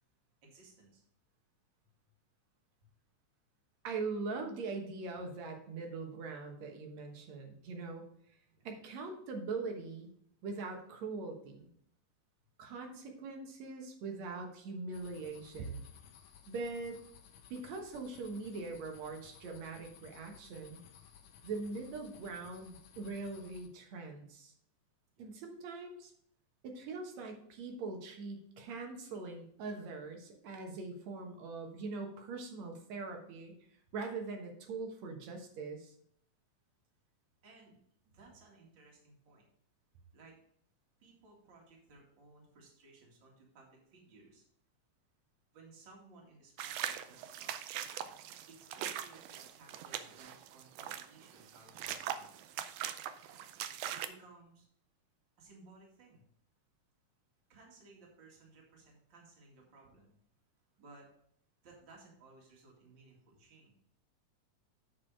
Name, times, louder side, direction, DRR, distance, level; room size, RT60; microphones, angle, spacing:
voice 1, 0.4-1.0 8.5-8.7 25.2-25.3 37.4-37.8 38.1-39.4 40.1-40.4 41.0-44.4 45.5-47.5 48.5-52.4 53.9-54.7 55.4-56.2 57.5-60.2 60.8-61.1 61.6-63.8, right 3 dB, 40° right, -2 dB, 2.5 m, -59 dB
voice 2, 3.8-8.1 8.6-10.1 10.4-11.7 12.6-15.8 16.5-17.0 17.5-20.8 21.4-24.5 25.2-26.1 26.6-33.5 33.9-35.9, right 3 dB, 65° right, 3 dB, 2.4 m, -42 dB
sound 1, 14.9-23.7, left 8 dB, 75° left, 2.1 m, -58 dB
sound 2, 46.6-54.1, right 10 dB, 85° right, 1.4 m, -41 dB
8.8 x 4.9 x 4.8 m, 0.68 s
omnidirectional pair, 3.5 m